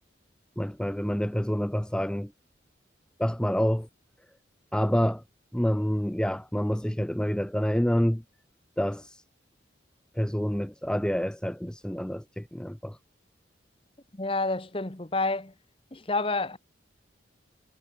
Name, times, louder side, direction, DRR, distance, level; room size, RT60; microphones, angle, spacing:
voice 1, 0.6-2.3 3.2-3.9 4.7-5.2 5.5-8.2 8.8-9.2 10.2-13.0, equal, 5° left, 0.6 m, -27 dB
voice 2, 14.1-15.5 15.9-16.6, left 3 dB, 30° left, 1.3 m, -29 dB
head